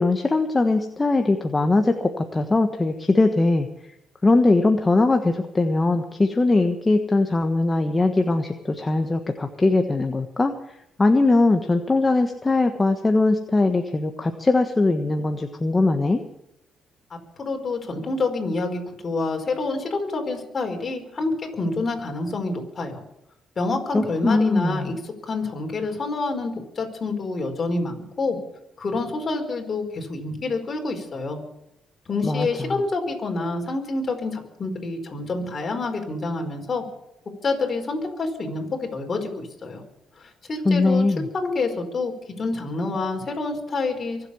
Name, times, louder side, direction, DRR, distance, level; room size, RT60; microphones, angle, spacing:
voice 1, 0.0-3.7 4.2-10.5 11.0-16.2 23.9-24.9 32.2-32.5 40.6-41.3, left 2 dB, 20° left, 5 dB, 1.3 m, -21 dB
voice 2, 17.1-23.0 23.6-25.0 25.3-28.4 28.8-31.4 32.1-36.8 37.4-39.8 40.2-41.0 41.3-44.3, left 3 dB, 40° left, 3 dB, 4.9 m, -27 dB
24.0 x 8.0 x 7.1 m, 0.83 s
cardioid pair, 90°, 0 cm